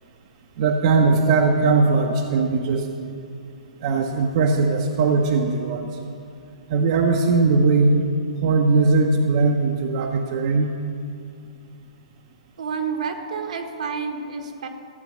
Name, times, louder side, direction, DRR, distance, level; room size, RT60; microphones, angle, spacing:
voice 1, 0.6-2.9 3.8-5.9 6.7-8.0 8.4-10.7, right 4 dB, 50° right, 1 dB, 0.9 m, -19 dB
voice 2, 12.6-14.7, right 5 dB, 70° right, 4 dB, 1.5 m, -29 dB
14.5 x 7.6 x 6.4 m, 2.5 s
hypercardioid pair, 135°, 4 cm